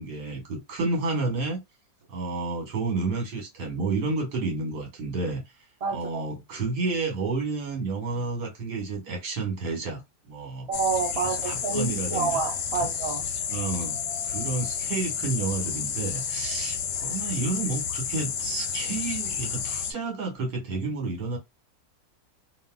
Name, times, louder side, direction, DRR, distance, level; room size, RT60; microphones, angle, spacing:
voice 1, 0.0-1.6 2.1-5.4 5.9-10.7 11.2-12.3 13.5-14.0 14.2-21.4, right 3 dB, 70° right, 1.9 m, -30 dB
voice 2, 5.8-6.3 10.7-13.3, right 5 dB, 45° right, 0.4 m, -28 dB
sound 1, 10.7-19.9, left 7 dB, 70° left, 1.0 m, -31 dB
3.2 x 2.5 x 2.2 m
omnidirectional pair, 1.9 m